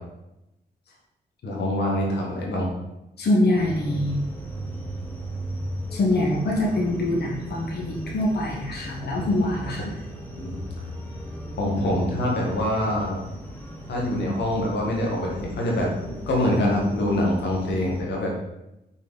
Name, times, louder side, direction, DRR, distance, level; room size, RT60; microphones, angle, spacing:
voice 1, 1.4-2.7 9.2-9.3 10.4-10.6 11.6-13.2 13.9-18.3, left 1 dB, 80° left, -2 dB, 1.4 m, -25 dB
voice 2, 3.2-4.2 5.9-10.0, left 1 dB, 65° left, -2 dB, 1.4 m, -24 dB
sound 1, 3.6-18.0, equal, 10° left, 1.6 m, -37 dB
5.5 x 4.3 x 4.0 m, 0.91 s
cardioid pair, 60°, 18 cm